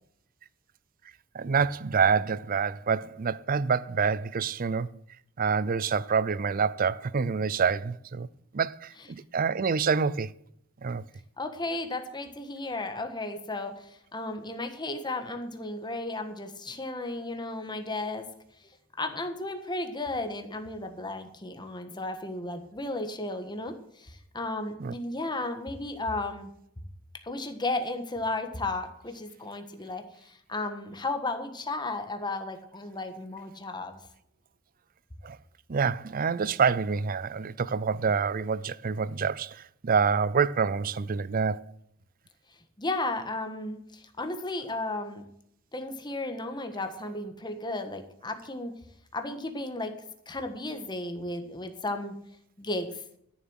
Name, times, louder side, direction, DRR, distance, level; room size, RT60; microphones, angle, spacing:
voice 1, 1.3-4.9 5.4-8.3 8.5-10.3 10.8-11.0 24.8-24.9 35.2-35.4 35.7-41.7, right 5 dB, 45° right, 0.5 m, -27 dB
voice 2, 11.4-18.3 19.0-26.5 27.2-34.0 42.8-45.2 45.7-48.7 49.1-49.9 50.3-52.1 52.6-53.0, left 2 dB, 20° left, 1.4 m, -34 dB
13.0 x 7.3 x 6.3 m
head